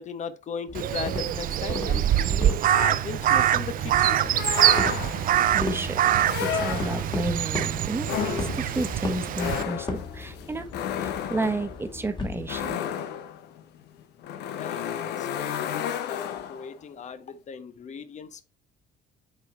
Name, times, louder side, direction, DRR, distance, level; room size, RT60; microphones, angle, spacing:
voice 1, 0.0-4.4 14.5-16.2 16.5-18.4, left 6 dB, 45° left, 1.1 m, -37 dB
sound 1, 0.7-12.7, left 3 dB, 25° left, 2.3 m, -37 dB
Crow, 0.7-9.6, right 11 dB, 55° right, 0.6 m, -24 dB
sound 2, 4.3-5.4 6.2-7.3 8.0-16.7, left 9 dB, 80° left, 1.0 m, -32 dB
voice 2, 5.5-6.0 6.4-10.7 11.0-12.8, right 2 dB, 15° right, 1.3 m, -32 dB
8.0 x 4.8 x 4.4 m
cardioid pair, 110°, 17 cm